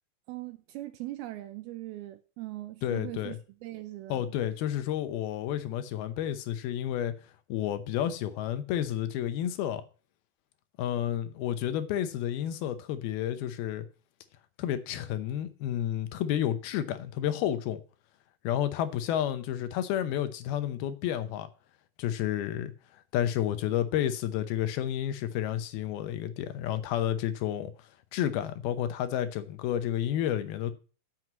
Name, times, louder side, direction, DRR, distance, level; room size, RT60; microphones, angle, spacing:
voice 1, 0.3-4.3, right 17 dB, 80° right, 2.4 m, -40 dB
voice 2, 2.8-3.4 4.1-7.1 7.5-9.8 10.8-13.9 14.6-17.8 18.4-21.5 22.0-22.7 23.1-27.7 28.1-30.7, left 11 dB, 75° left, 2.7 m, -30 dB
7.7 x 6.1 x 7.8 m
omnidirectional pair, 4.6 m